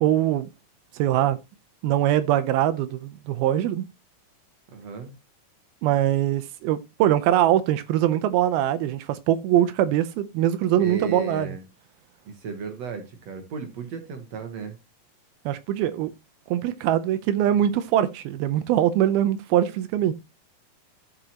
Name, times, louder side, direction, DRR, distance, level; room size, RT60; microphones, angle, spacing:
voice 1, 0.0-0.5 1.0-1.4 1.8-3.9 5.8-11.5 15.5-16.1 16.5-20.1, right 12 dB, 80° right, 2.4 m, -22 dB
voice 2, 4.7-5.1 10.8-11.6 12.3-14.8, right 5 dB, 65° right, 1.7 m, -35 dB
14.0 x 6.0 x 2.8 m
omnidirectional pair, 4.5 m